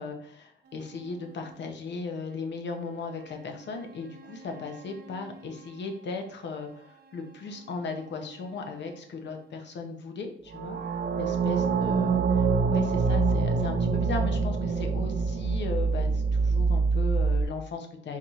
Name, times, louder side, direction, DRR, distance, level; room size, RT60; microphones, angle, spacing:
voice 1, 0.0-10.8 11.2-18.2, left 4 dB, 60° left, 4 dB, 0.8 m, -37 dB
sound 1, 4.1-5.3 10.5-17.5, right 4 dB, 50° right, 0.7 m, -26 dB
4.1 x 2.8 x 3.0 m, 0.65 s
cardioid pair, 100°, 21 cm